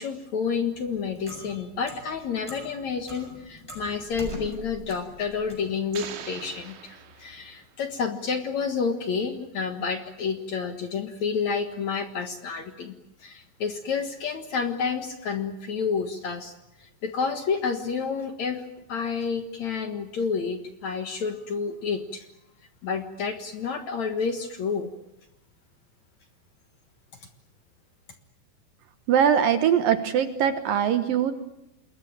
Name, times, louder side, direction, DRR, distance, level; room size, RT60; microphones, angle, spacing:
voice 1, 0.0-12.9 13.2-16.5 16.8-22.3 22.8-24.9, left 5 dB, 55° left, 7 dB, 2.2 m, -30 dB
Clock, 0.7-5.7, right 1 dB, 5° left, 7.6 m, -42 dB
sound 1, 5.9-7.8, right 8 dB, 80° right, 4.6 m, -42 dB
voice 2, 29.1-31.3, right 8 dB, 65° right, 10 dB, 2.5 m, -22 dB
27.5 x 21.5 x 8.8 m, 0.85 s
omnidirectional pair, 5.1 m